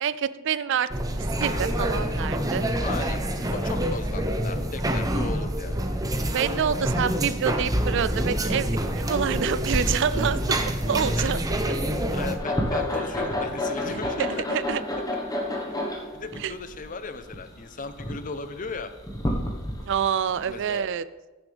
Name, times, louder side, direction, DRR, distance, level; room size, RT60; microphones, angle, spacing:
voice 1, 0.0-0.9 1.4-2.7 6.3-8.7 9.0-11.4 14.2-14.8 16.4-16.5 19.9-21.1, right 7 dB, 60° right, 16 dB, 0.4 m, -27 dB
sound 1, 0.9-12.4, right 1 dB, 15° right, 0.7 m, -26 dB
voice 2, 2.8-3.2 3.5-5.8 11.2-11.3 12.1-14.5 16.1-18.9 20.5-20.8, left 4 dB, 40° left, 10 dB, 0.6 m, -36 dB
sound 2, 12.4-20.8, left 1 dB, 20° left, 1.2 m, -30 dB
15.5 x 7.1 x 3.4 m, 1.2 s
head